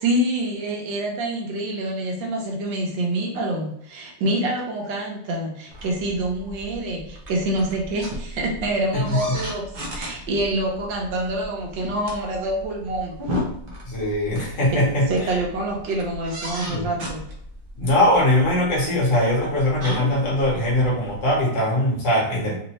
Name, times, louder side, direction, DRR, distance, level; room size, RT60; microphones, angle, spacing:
voice 1, 0.0-9.6 9.9-13.4 14.7-14.8 15.1-17.2, right 1 dB, 80° right, 0 dB, 1.6 m, -26 dB
sound 1, 5.7-21.4, equal, 50° right, 0.6 m, -36 dB
voice 2, 13.9-15.0 16.7-17.0 17.8-22.6, left 1 dB, 45° left, -3 dB, 1.5 m, -21 dB
3.8 x 2.7 x 3.0 m, 0.71 s
omnidirectional pair, 2.0 m